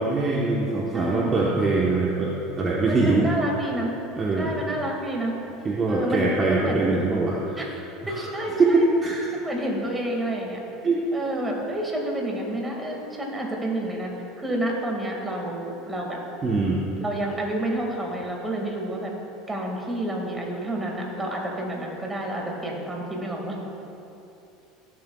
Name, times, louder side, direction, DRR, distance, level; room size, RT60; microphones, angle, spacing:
voice 1, 0.0-3.3 4.2-4.6 5.6-7.6 8.1-8.3 8.6-9.2 10.8-11.0 16.4-16.8, right 3 dB, 30° right, -4 dB, 1.1 m, -23 dB
voice 2, 0.9-1.5 2.9-3.9 4.4-5.3 5.9-7.0 7.6-8.9 9.3-10.6 11.1-14.1 14.4-16.2 17.0-19.1 19.5-23.7, right 1 dB, 15° right, -1 dB, 2.0 m, -29 dB
14.5 x 7.6 x 2.4 m, 2.9 s
supercardioid pair, 100°, 0 cm